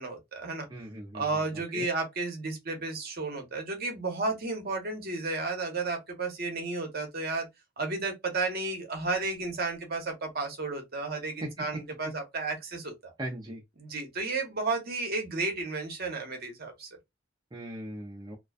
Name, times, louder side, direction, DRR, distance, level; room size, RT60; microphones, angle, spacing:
voice 1, 0.0-0.7 1.1-7.5 7.8-13.1 13.8-16.9, right 3 dB, 50° right, 0.8 m, -33 dB
voice 2, 0.7-1.9 11.4-11.5 13.2-13.6 17.5-18.4, right 1 dB, 20° right, 0.5 m, -39 dB
2.4 x 2.2 x 2.2 m
head